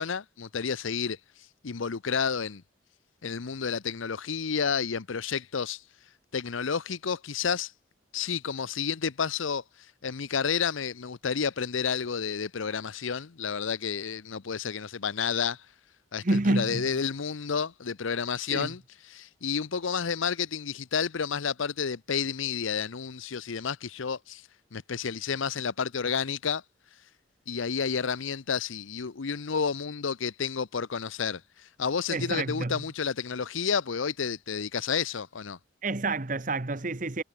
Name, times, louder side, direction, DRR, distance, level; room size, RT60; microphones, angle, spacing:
voice 1, 0.0-2.6 3.2-5.8 6.3-7.7 8.1-15.7 16.1-26.6 27.5-35.6, left 6 dB, 85° left, 0.7 m, -31 dB
voice 2, 16.2-16.9 18.5-18.7 32.1-32.8 35.8-37.2, right 2 dB, 40° right, 1.1 m, -28 dB
head